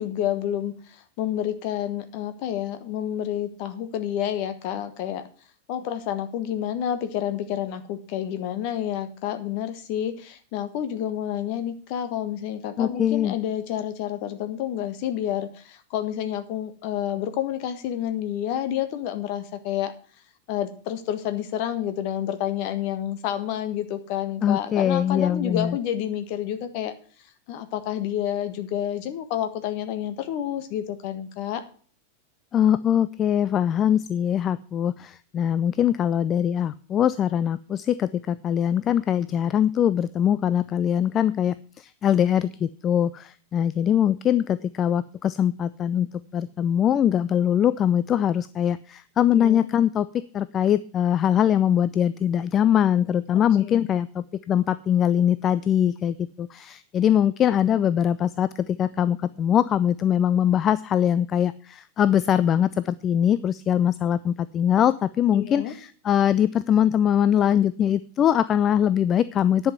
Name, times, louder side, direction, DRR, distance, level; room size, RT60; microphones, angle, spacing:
voice 1, 0.0-5.2 5.7-19.9 20.5-26.9 27.5-31.6 49.3-49.7 53.6-53.8 65.3-65.7, left 10 dB, 45° left, 9 dB, 1.4 m, -29 dB
voice 2, 12.8-13.3 24.4-25.8 32.5-46.1 46.3-69.7, left 9 dB, 30° left, 16 dB, 0.4 m, -22 dB
10.5 x 5.6 x 7.9 m, 0.43 s
figure-of-eight pair, 90°, 0 cm